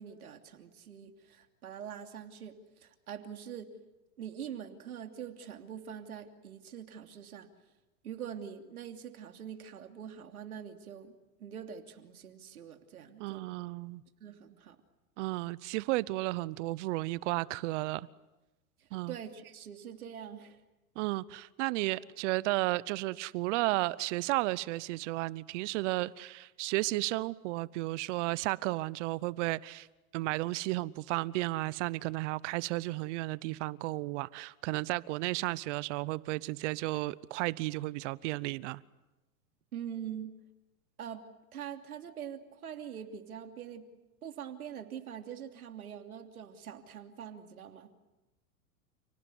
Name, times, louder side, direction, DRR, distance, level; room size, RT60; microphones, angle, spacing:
voice 1, 0.0-3.7 4.2-7.5 8.0-11.1 11.4-13.5 14.2-14.8 18.8-20.6 39.7-40.3 41.0-41.3 41.5-43.9 44.2-47.9, right 8 dB, 85° right, 3.0 m, -44 dB
voice 2, 13.2-14.0 15.2-18.1 18.9-19.1 21.0-29.9 30.1-38.8, right 20 dB, 55° right, 0.9 m, -33 dB
30.0 x 19.0 x 9.7 m
hypercardioid pair, 110°, 43 cm